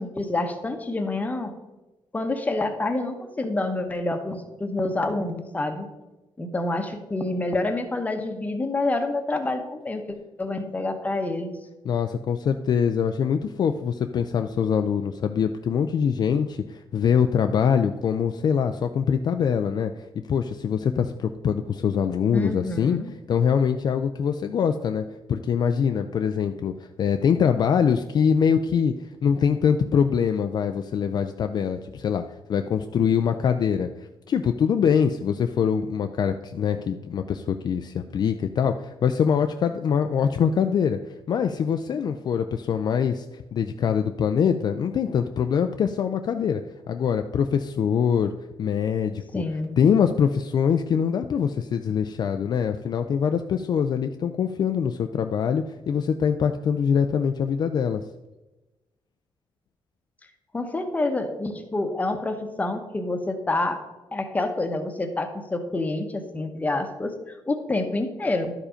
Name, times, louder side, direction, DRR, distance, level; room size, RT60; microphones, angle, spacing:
voice 1, 0.0-1.5 2.1-5.9 6.4-10.0 10.4-11.6 22.3-23.1 49.3-49.8 60.5-63.8 64.1-68.5, left 2 dB, 15° left, 6 dB, 0.9 m, -27 dB
voice 2, 11.8-23.0 23.3-28.9 29.2-32.2 32.5-46.6 46.9-48.3 48.6-49.4 49.8-58.0, left 7 dB, 45° left, 7 dB, 0.4 m, -23 dB
11.5 x 4.9 x 5.0 m, 1.1 s
cardioid pair, 150°, 10 cm